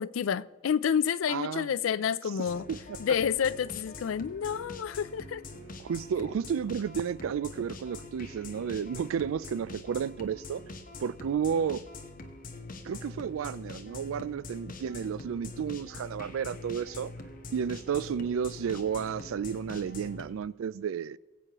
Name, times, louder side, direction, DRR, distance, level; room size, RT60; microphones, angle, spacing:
voice 1, 0.0-2.7 3.0-5.4, left 7 dB, 85° left, 0.4 m, -29 dB
voice 2, 1.3-1.7 2.7-2.8 5.8-10.6 11.0-11.8 12.8-17.1 17.5-21.2, right 7 dB, 90° right, 0.3 m, -32 dB
sound 1, 2.4-20.3, left 2 dB, 45° left, 1.0 m, -44 dB
21.5 x 8.3 x 3.0 m
head